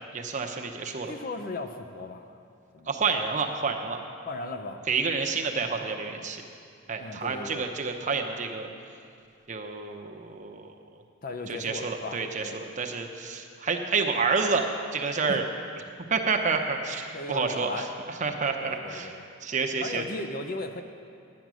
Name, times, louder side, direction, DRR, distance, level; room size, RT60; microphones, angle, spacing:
voice 1, 0.1-1.1 2.9-4.0 4.9-6.4 6.9-8.7 9.5-10.7 11.5-15.4 16.1-19.1 19.4-20.0, right 4 dB, 35° right, 3 dB, 0.7 m, -29 dB
voice 2, 1.1-2.4 2.7-2.9 4.3-4.8 7.0-7.6 11.2-12.6 15.3-15.4 17.1-17.9 18.2-19.3 19.8-20.8, left 2 dB, 45° left, 6 dB, 0.6 m, -37 dB
10.5 x 9.2 x 6.2 m, 2.4 s
head